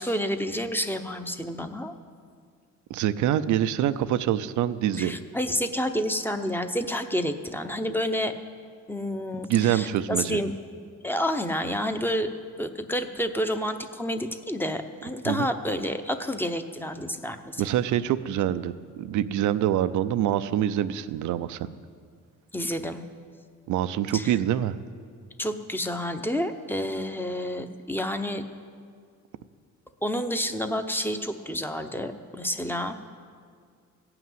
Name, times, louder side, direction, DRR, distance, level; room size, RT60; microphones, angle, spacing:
voice 1, 0.0-1.9 5.0-8.3 8.9-10.5 11.0-12.3 12.6-17.6 22.5-23.0 24.1-24.3 25.4-28.4 30.0-33.1, equal, 5° left, 7 dB, 0.8 m, -29 dB
voice 2, 2.9-5.2 9.5-10.4 15.3-15.5 17.6-21.7 23.7-24.8, right 11 dB, 75° right, 13 dB, 0.6 m, -25 dB
15.0 x 5.9 x 9.3 m, 2.1 s
cardioid pair, 90°, 30 cm